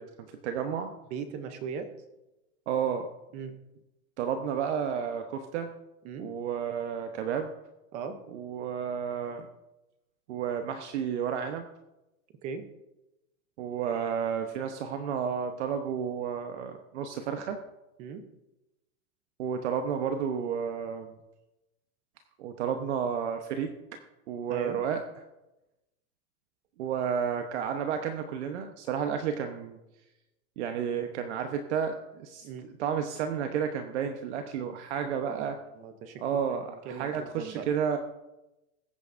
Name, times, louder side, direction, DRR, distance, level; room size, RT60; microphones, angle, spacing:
voice 1, 0.0-0.9 2.7-3.1 4.2-5.7 6.2-7.5 8.3-9.5 10.3-11.7 13.6-17.6 19.4-21.1 22.4-24.0 24.3-25.0 26.8-29.8 30.6-35.6 36.2-38.0, right 7 dB, 50° right, 6 dB, 1.0 m, -31 dB
voice 2, 1.1-1.9 3.3-3.5 6.0-6.3 7.9-8.2 12.4-12.7 18.0-18.3 24.5-24.8 32.4-32.7 35.2-36.2 36.5-37.7, right 6 dB, 15° right, 8 dB, 0.6 m, -39 dB
21.5 x 8.9 x 2.6 m, 0.96 s
supercardioid pair, 175°, 43 cm